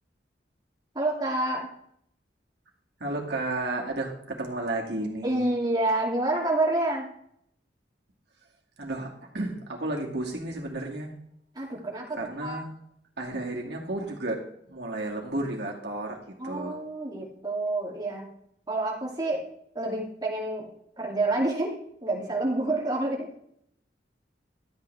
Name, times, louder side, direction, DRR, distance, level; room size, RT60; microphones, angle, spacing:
voice 1, 0.9-1.7 5.2-7.1 11.5-12.6 16.4-18.3 18.7-19.4 19.7-23.3, right 2 dB, 25° right, -3 dB, 2.5 m, -28 dB
voice 2, 3.0-5.5 8.8-11.1 12.2-12.7 13.2-16.2 16.4-16.8, right 2 dB, 65° right, -1 dB, 2.3 m, -32 dB
12.5 x 8.7 x 3.4 m, 0.70 s
head